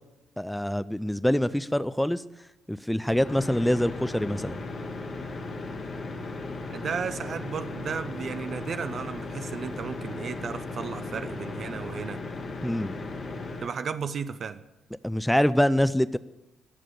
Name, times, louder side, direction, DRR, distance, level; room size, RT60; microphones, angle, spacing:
voice 1, 0.4-2.2 2.7-4.6 12.6-12.9 15.0-16.2, equal, 5° left, 15 dB, 0.6 m, -25 dB
sound 1, 3.0-13.7, left 3 dB, 45° left, 2.0 m, -36 dB
voice 2, 6.7-12.2 13.6-14.6, right 6 dB, 50° right, 11 dB, 0.8 m, -34 dB
19.0 x 7.6 x 8.7 m, 1.0 s
figure-of-eight pair, 45°, 0 cm